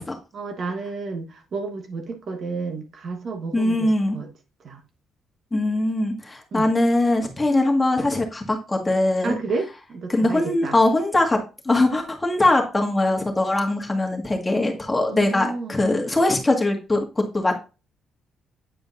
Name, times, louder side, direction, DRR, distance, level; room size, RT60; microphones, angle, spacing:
voice 1, 0.3-4.3 4.6-4.8 6.5-6.7 9.2-10.8 14.9-15.7, right 4 dB, 55° right, 1.2 m, -31 dB
voice 2, 3.5-4.2 5.5-9.4 10.1-11.4 11.6-17.5, left 2 dB, 15° left, 1.7 m, -21 dB
8.8 x 5.0 x 2.6 m
cardioid pair, 90°, 0 cm